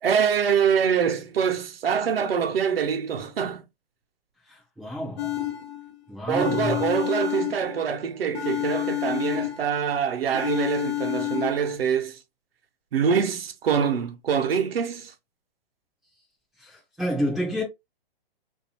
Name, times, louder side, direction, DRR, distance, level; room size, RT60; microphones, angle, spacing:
voice 1, 0.0-3.6 6.3-12.2 12.9-15.1, right 7 dB, 75° right, 0.9 m, -24 dB
voice 2, 4.5-5.4 6.1-6.8 16.6-17.6, equal, ahead, 0.4 m, -29 dB
sound 1, 5.2-6.0 6.4-8.0 8.3-9.9 10.3-11.8, left 14 dB, 90° left, 0.7 m, -29 dB
3.3 x 2.7 x 2.9 m
hypercardioid pair, 155°, 30 cm